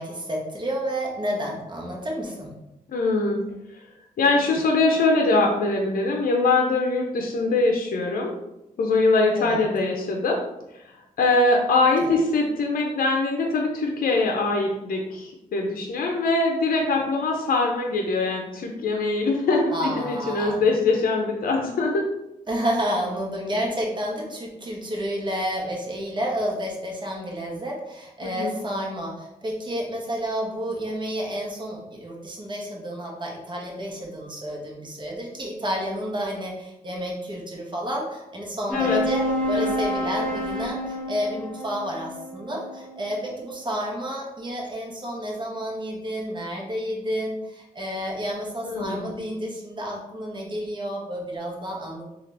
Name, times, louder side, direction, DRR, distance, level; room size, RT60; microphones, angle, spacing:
voice 1, 0.0-2.5 9.3-9.7 12.0-12.2 19.7-20.6 22.5-52.0, equal, 30° right, -2 dB, 1.1 m, -30 dB
voice 2, 2.9-3.4 3.7-3.8 4.2-8.3 8.8-10.4 11.2-22.0 28.2-28.5 38.7-39.0 39.5-39.8 48.6-49.1, left 3 dB, 75° left, 1 dB, 0.6 m, -22 dB
sound 1, 38.7-43.5, left 1 dB, 10° left, 1.3 m, -29 dB
3.8 x 2.5 x 3.3 m, 0.90 s
cardioid pair, 70°, 15 cm